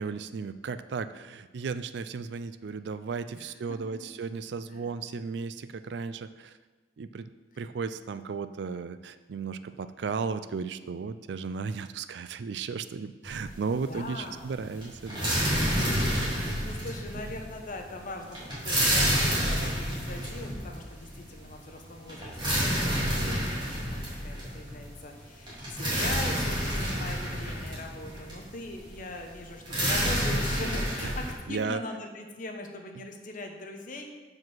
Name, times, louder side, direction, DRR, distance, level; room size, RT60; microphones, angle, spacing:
voice 1, 0.0-6.5 7.0-7.3 7.6-15.4 16.1-16.6 31.0-31.1 31.5-31.8, right 5 dB, 65° right, 13 dB, 0.4 m, -35 dB
voice 2, 3.3-4.1 4.7-4.9 13.9-14.7 16.1-34.1, left 2 dB, 45° left, 3 dB, 1.0 m, -41 dB
sound 1, 13.2-13.9 14.1-31.3, equal, 25° right, 2.8 m, -29 dB
7.5 x 4.9 x 6.1 m, 1.3 s
head